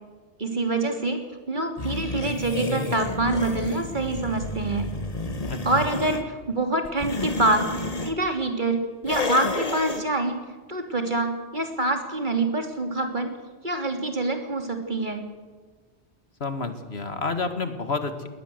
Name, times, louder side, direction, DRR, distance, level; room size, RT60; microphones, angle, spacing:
voice 1, 0.4-1.2 1.5-4.9 5.6-10.4 10.7-13.3 13.6-15.2, right 2 dB, 45° right, 5 dB, 3.2 m, -26 dB
sound 1, 1.8-6.2 6.8-8.1 9.0-10.0, left 2 dB, 35° left, 1.6 m, -30 dB
voice 2, 5.5-5.8 16.4-18.3, left 4 dB, 65° left, 9 dB, 2.1 m, -30 dB
22.0 x 18.5 x 7.8 m, 1.4 s
omnidirectional pair, 1.2 m